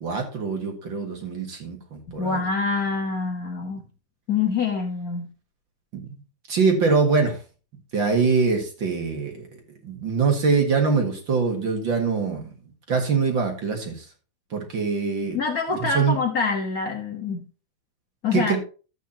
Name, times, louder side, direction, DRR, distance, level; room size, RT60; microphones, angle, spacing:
voice 1, 0.0-2.4 6.5-7.4 7.9-9.5 9.8-12.5 12.9-14.0 14.5-15.4 15.8-16.2 18.3-18.6, right 4 dB, 45° right, 3 dB, 2.1 m, -23 dB
voice 2, 2.2-3.8 4.3-5.3 15.3-17.4 18.2-18.6, left 4 dB, 65° left, 2 dB, 0.9 m, -25 dB
13.0 x 8.5 x 2.9 m, 0.35 s
omnidirectional pair, 3.6 m